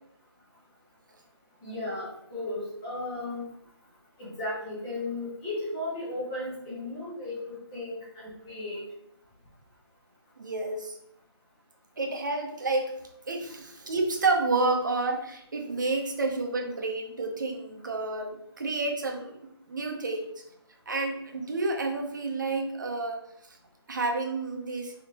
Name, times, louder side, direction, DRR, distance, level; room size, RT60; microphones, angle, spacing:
voice 1, 1.6-3.5 4.2-8.9, left 2 dB, 10° left, -7 dB, 0.7 m, -35 dB
voice 2, 10.4-10.9 12.0-12.9 13.3-19.3 19.7-20.3 20.9-23.2 23.9-24.9, right 3 dB, 45° right, 3 dB, 0.8 m, -29 dB
4.8 x 3.6 x 2.8 m, 0.75 s
hypercardioid pair, 175°, 14 cm